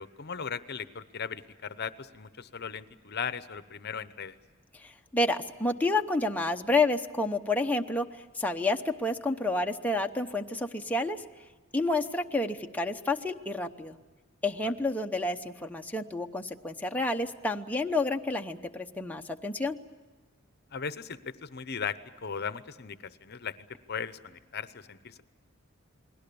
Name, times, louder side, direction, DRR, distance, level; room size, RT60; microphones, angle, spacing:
voice 1, 0.0-4.4 14.6-14.7 20.7-25.2, left 6 dB, 55° left, 13 dB, 0.9 m, -38 dB
voice 2, 4.7-8.1 8.4-11.2 11.7-14.0 14.4-19.8, left 2 dB, 10° left, 3 dB, 0.9 m, -29 dB
29.5 x 21.0 x 6.9 m, 1.4 s
head